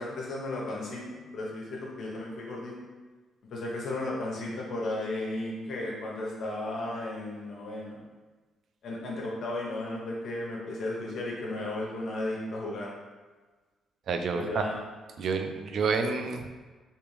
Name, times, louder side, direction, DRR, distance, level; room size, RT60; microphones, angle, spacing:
voice 1, 0.0-2.8 3.5-8.0 8.8-12.9 14.3-14.8, left 2 dB, 60° left, -3 dB, 0.8 m, -34 dB
voice 2, 14.1-14.6 15.2-16.5, right 5 dB, 60° right, 5 dB, 0.4 m, -29 dB
3.5 x 2.8 x 3.1 m, 1.3 s
cardioid pair, 90°, 0 cm